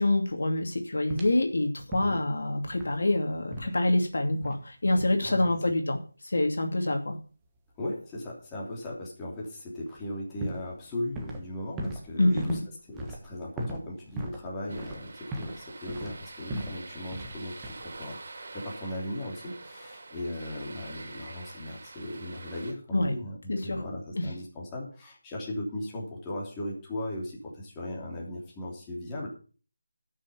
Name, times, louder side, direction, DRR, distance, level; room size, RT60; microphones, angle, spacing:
voice 1, 0.0-6.0 6.2-7.2 12.2-12.6 22.9-23.1 23.5-23.8 24.2-24.3, left 1 dB, 65° left, 4 dB, 2.5 m, -26 dB
sound 1, 1.1-1.5 1.9-2.3 2.6-3.1 3.5-3.8 4.4-4.7 5.0-5.2 9.9-10.0 10.4-11.5 11.8-15.6 15.9-16.8 17.1-17.4 17.6-18.0, right 1 dB, 10° right, 1.3 m, -38 dB
voice 2, 7.8-12.6 12.9-29.3, left 1 dB, 10° left, -4 dB, 3.2 m, -37 dB
sound 2, 14.7-22.7, right 3 dB, 50° right, 3.1 m, -45 dB
12.0 x 6.4 x 7.1 m, 0.38 s
figure-of-eight pair, 170°, 0 cm